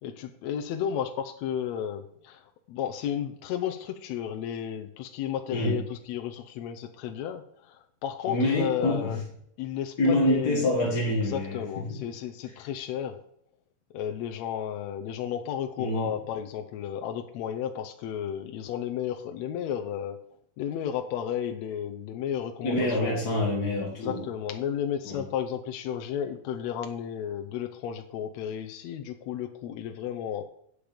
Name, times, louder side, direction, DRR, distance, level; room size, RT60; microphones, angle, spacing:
voice 1, 0.0-9.2 9.6-10.7 11.0-13.2 13.9-20.2 20.6-23.2 24.0-30.4, left 9 dB, 75° left, 5 dB, 1.8 m, -33 dB
voice 2, 8.3-9.1 10.0-11.6 11.9-12.0 15.8-16.1 22.6-24.3 25.0-25.2, left 1 dB, 40° left, -3 dB, 1.6 m, -26 dB
8.8 x 6.4 x 5.1 m, 0.71 s
omnidirectional pair, 3.4 m